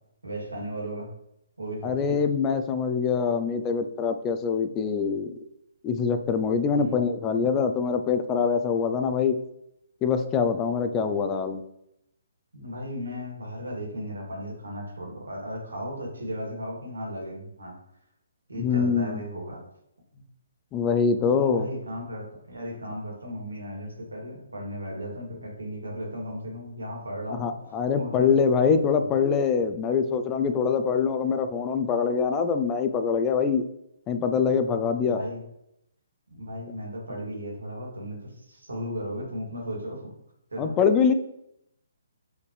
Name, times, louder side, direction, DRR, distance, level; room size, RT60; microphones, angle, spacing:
voice 1, 0.2-1.1 1.6-2.2 6.7-7.0 12.5-17.8 18.5-19.6 20.1-20.2 21.3-27.5 27.9-28.3 35.0-35.4 36.3-40.1 40.5-40.7, equal, 85° right, -1 dB, 2.6 m, -35 dB
voice 2, 1.8-5.3 5.8-9.4 10.0-11.6 18.6-19.2 20.7-21.7 27.3-33.6 34.1-35.2 40.6-41.1, left 6 dB, 20° left, 8 dB, 0.5 m, -24 dB
6.6 x 5.0 x 3.3 m, 0.79 s
figure-of-eight pair, 140°, 0 cm